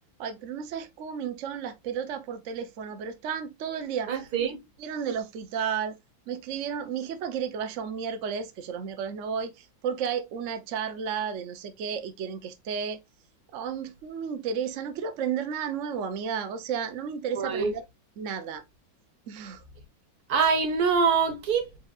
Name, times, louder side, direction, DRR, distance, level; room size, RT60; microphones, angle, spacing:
voice 1, 0.2-4.3 4.8-6.0 6.3-13.0 13.5-17.8 18.2-18.6 19.3-19.6, right 7 dB, 70° right, 0.7 m, -33 dB
voice 2, 4.1-4.6 17.4-17.7 20.3-21.7, right 5 dB, 55° right, 1.5 m, -24 dB
5.3 x 4.1 x 2.3 m
omnidirectional pair, 2.2 m